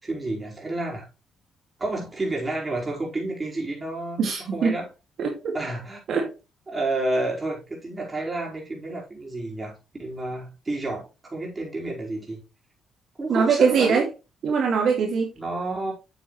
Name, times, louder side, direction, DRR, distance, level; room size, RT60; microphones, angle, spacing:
voice 1, 0.0-1.1 1.8-4.2 4.5-4.9 5.5-6.0 6.7-12.4 13.2-14.0 15.4-15.9, right 2 dB, 25° right, 4.8 m, -30 dB
voice 2, 4.2-4.7 5.2-5.5 6.1-6.3 13.3-14.1 14.4-15.3, right 5 dB, 65° right, 2.3 m, -22 dB
8.6 x 7.9 x 3.2 m
cardioid pair, 90°, 0 cm